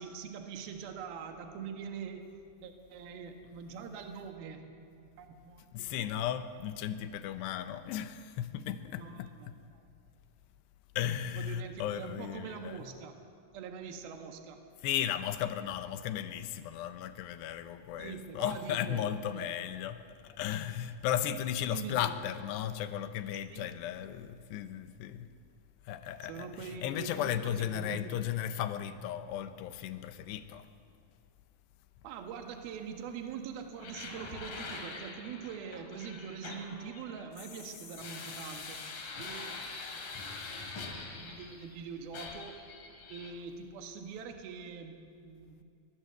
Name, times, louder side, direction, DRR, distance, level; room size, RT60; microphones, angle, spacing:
voice 1, 0.0-2.3 2.6-6.1 9.0-9.6 11.3-13.2 13.5-14.6 18.0-19.5 21.7-22.1 23.5-23.7 26.3-28.2 32.0-38.8 39.2-39.7 40.1-40.3 41.1-42.6 43.1-45.6, right 6 dB, 70° right, 4 dB, 3.3 m, -44 dB
voice 2, 5.7-9.6 11.0-12.9 14.8-25.3 25.9-30.7, left 10 dB, 85° left, 10 dB, 3.0 m, -35 dB
sound 1, 33.8-41.8 42.1-43.3, left 4 dB, 55° left, 3.7 m, -44 dB
22.5 x 19.0 x 8.0 m, 2.4 s
omnidirectional pair, 4.8 m